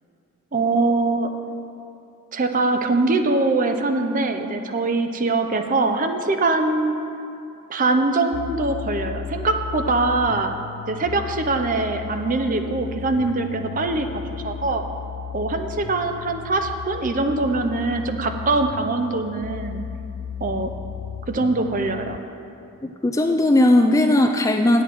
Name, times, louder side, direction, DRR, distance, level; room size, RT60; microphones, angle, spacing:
voice 1, 0.5-1.3 2.3-7.0 7.7-10.5 10.9-14.8 15.3-19.8 20.4-20.7 21.3-22.2, right 3 dB, 35° right, 6 dB, 0.6 m, -23 dB
sound 1, 8.3-22.2, left 8 dB, 90° left, 0.3 m, -35 dB
voice 2, 22.8-24.8, left 1 dB, 15° left, 5 dB, 0.4 m, -18 dB
9.0 x 8.2 x 5.9 m, 2.7 s
head